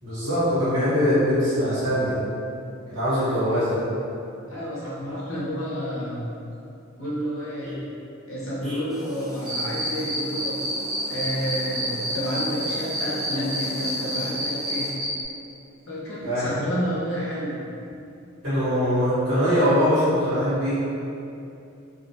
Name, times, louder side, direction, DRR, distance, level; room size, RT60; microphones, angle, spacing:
voice 1, 0.0-2.1 2.9-3.8 7.6-7.7 8.6-8.8 16.2-16.5 18.4-20.8, equal, 60° right, -13 dB, 1.2 m, -22 dB
voice 2, 4.5-6.4 7.0-7.8 8.3-10.6 11.1-15.0 15.9-17.6, equal, 60° left, -7 dB, 0.7 m, -30 dB
sound 1, 8.9-14.9, equal, ahead, 0.3 m, -40 dB
Cricket, 9.5-15.1, right 1 dB, 40° right, 1.0 m, -29 dB
2.4 x 2.1 x 2.7 m, 2.6 s
head